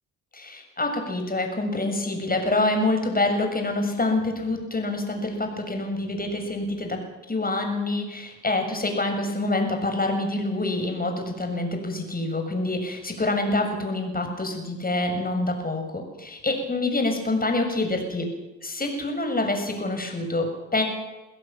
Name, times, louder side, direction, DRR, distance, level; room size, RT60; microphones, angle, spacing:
voice 1, 0.3-7.0 7.3-18.3 18.6-20.8, left 2 dB, 25° left, 4 dB, 6.9 m, -26 dB
23.5 x 15.0 x 7.3 m, 1.1 s
hypercardioid pair, 55°, 36 cm